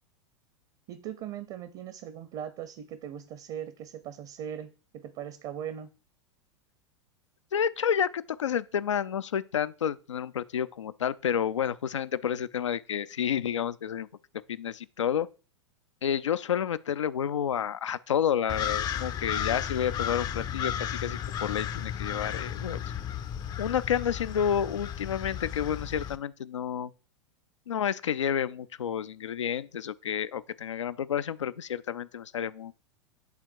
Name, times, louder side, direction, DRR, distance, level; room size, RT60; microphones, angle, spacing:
voice 1, 0.9-5.9, right 9 dB, 40° right, 0.8 m, -39 dB
voice 2, 7.5-14.1 14.5-15.3 16.0-22.8 23.6-26.9 27.7-32.7, left 8 dB, 75° left, 0.5 m, -30 dB
sound 1, 18.5-26.2, left 9 dB, 25° left, 0.6 m, -34 dB
10.5 x 3.7 x 4.6 m
figure-of-eight pair, 90°, 16 cm